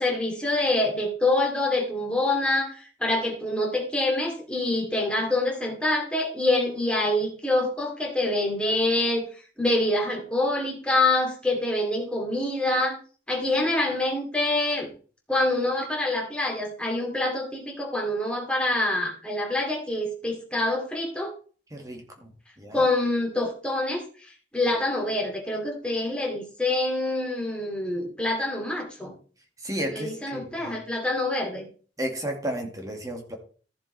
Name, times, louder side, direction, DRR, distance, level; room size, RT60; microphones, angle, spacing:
voice 1, 0.0-9.3 9.6-13.0 13.3-14.9 15.3-21.3 22.7-29.1 29.9-31.7, left 2 dB, 5° left, -1 dB, 2.6 m, -26 dB
voice 2, 21.7-22.3 22.6-22.8 29.6-30.7 32.0-33.3, equal, 20° right, 2 dB, 2.0 m, -33 dB
15.0 x 6.9 x 3.4 m, 0.40 s
head